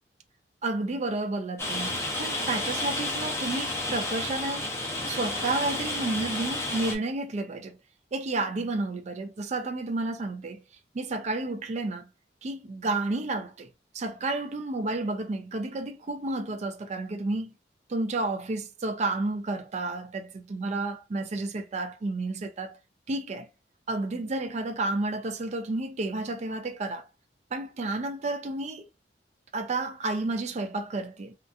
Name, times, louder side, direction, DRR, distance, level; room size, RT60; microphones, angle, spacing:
voice 1, 0.6-4.7 5.1-7.8 8.1-10.6 10.9-12.1 12.4-13.7 13.9-17.5 17.9-22.7 23.1-23.5 23.9-27.1 27.5-28.9 29.5-31.3, right 2 dB, 40° right, 0.4 m, -31 dB
Rain, 1.6-7.0, left 2 dB, 15° left, 0.7 m, -31 dB
2.6 x 2.4 x 2.2 m
head